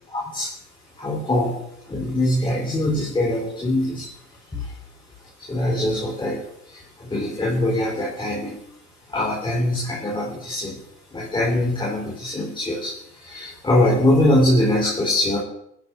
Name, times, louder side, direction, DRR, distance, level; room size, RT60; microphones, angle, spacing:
voice 1, 0.1-0.5 1.0-1.6 1.9-4.1 4.5-4.7 5.5-8.6 9.1-10.7 11.1-15.4, left 1 dB, 10° left, -4 dB, 3.6 m, -22 dB
26.5 x 10.5 x 3.7 m, 0.77 s
figure-of-eight pair, 95°, 50 cm